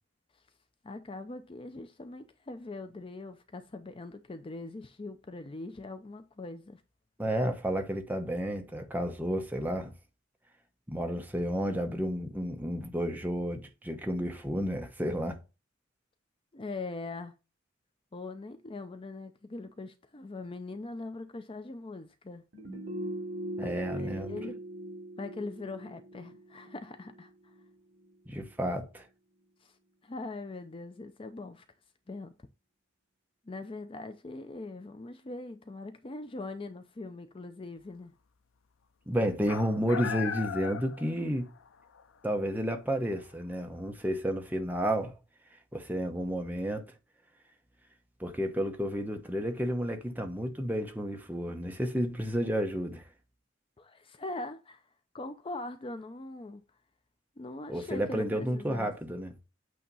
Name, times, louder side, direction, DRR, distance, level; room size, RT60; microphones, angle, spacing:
voice 1, 0.8-6.8 16.5-17.3 18.1-22.4 23.6-24.6 25.2-27.5 29.6-29.8 30.0-31.6 32.1-32.3 33.5-38.1 53.8-54.8 55.1-56.6 57.4-58.9, left 2 dB, 25° left, 0.5 m, -41 dB
voice 2, 7.2-9.9 10.9-15.4 23.6-24.4 28.3-29.1 39.1-41.5 42.2-45.2 45.7-46.8 48.2-53.0 57.7-59.3, equal, 10° right, 0.9 m, -31 dB
rhodes chords, 22.5-27.7 28.0-28.1, right 1 dB, 65° right, 3.1 m, -40 dB
sound 1, 39.5-41.7 42.0-42.1 43.2-43.3, left 8 dB, 85° left, 0.5 m, -37 dB
8.5 x 2.9 x 5.3 m
head